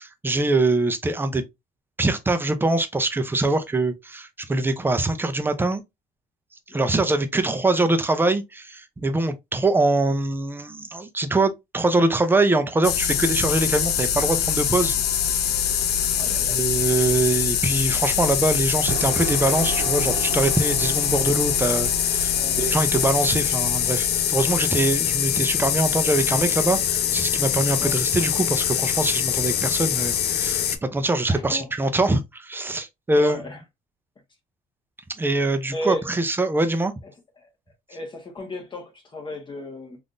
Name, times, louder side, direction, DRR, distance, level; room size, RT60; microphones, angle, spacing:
voice 1, 0.0-1.4 2.0-5.8 6.7-15.0 15.3-15.4 16.4-33.5 35.2-36.9, right 2 dB, 10° right, 0.5 m, -23 dB
sound 1, 12.8-30.8, left 9 dB, 75° left, 0.6 m, -23 dB
voice 2, 16.2-16.6 21.2-21.3 22.3-22.6 27.8-28.0 31.3-31.7 33.1-33.6 35.7-36.1 36.4-36.6 37.4-37.5 37.9-40.0, left 1 dB, 30° left, 1.1 m, -34 dB
sound 2, 18.9-24.5, right 10 dB, 85° right, 0.4 m, -36 dB
3.5 x 2.6 x 2.5 m
cardioid pair, 110°, 17 cm